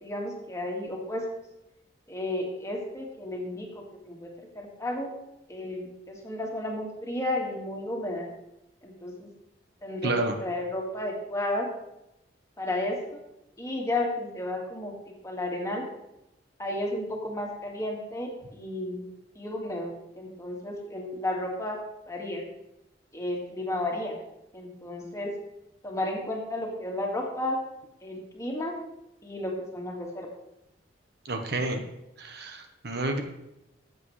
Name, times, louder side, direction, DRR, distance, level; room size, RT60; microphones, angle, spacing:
voice 1, 0.0-1.2 2.1-5.1 5.5-8.3 8.8-9.3 9.8-10.1 10.4-11.7 12.6-13.2 13.6-14.9 15.2-15.9 16.6-19.0 19.4-21.8 22.1-22.4 23.1-24.2 24.5-25.3 25.8-27.6 28.0-28.8 29.2-30.3, left 1 dB, 15° left, 0 dB, 1.8 m, -33 dB
voice 2, 10.0-10.4 31.2-31.8 32.2-33.2, right 2 dB, 60° right, 5 dB, 1.1 m, -29 dB
14.0 x 7.8 x 3.2 m, 0.88 s
head